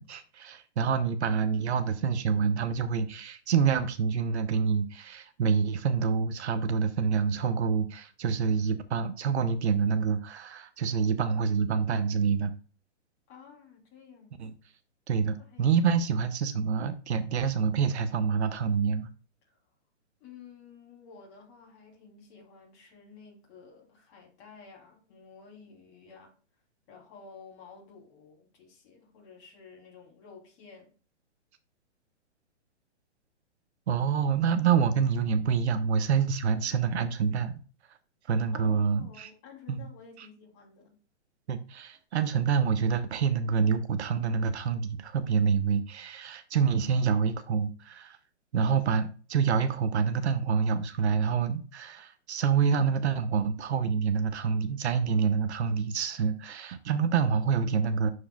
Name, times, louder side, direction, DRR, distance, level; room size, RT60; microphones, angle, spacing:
voice 1, 0.0-12.5 14.4-14.5 15.1-19.1 33.9-37.5 38.3-39.3 39.7-39.9 40.2-40.3 41.5-48.2 48.5-58.1, right 6 dB, 65° right, 0.8 m, -27 dB
voice 2, 13.3-14.4 15.4-15.7 19.4-19.6 20.2-26.3 26.9-30.9 38.5-41.0, left 6 dB, 30° left, 3.1 m, -52 dB
11.5 x 4.7 x 2.3 m
hypercardioid pair, 150°, 36 cm